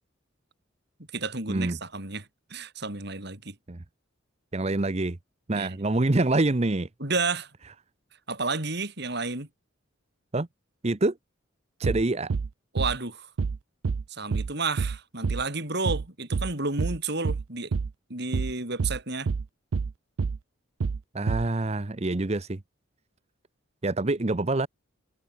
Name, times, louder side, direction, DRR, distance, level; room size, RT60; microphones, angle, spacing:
voice 1, 1.1-3.6 5.5-5.8 7.0-7.5 8.3-9.5 12.7-13.3 14.1-17.7 18.1-19.3, right 3 dB, 55° right, 5.6 m, -31 dB
voice 2, 4.5-5.2 5.5-6.9 10.3-10.5 10.8-11.2 11.8-12.3 21.1-22.6 23.8-24.7, right 2 dB, 30° right, 0.8 m, -26 dB
sound 1, 11.8-12.0 12.3-12.5 12.8-13.0 13.4-13.6 13.8-14.0 14.3-14.5 14.8-15.0 15.2-15.4 15.8-16.0 16.3-16.5 16.8-17.0 17.2-17.4 17.7-17.9 18.3-18.5 18.8-19.0 19.3-19.5 19.7-19.9 20.2-20.4 20.8-21.0 21.3-21.5, right 5 dB, 85° right, 0.5 m, -27 dB
head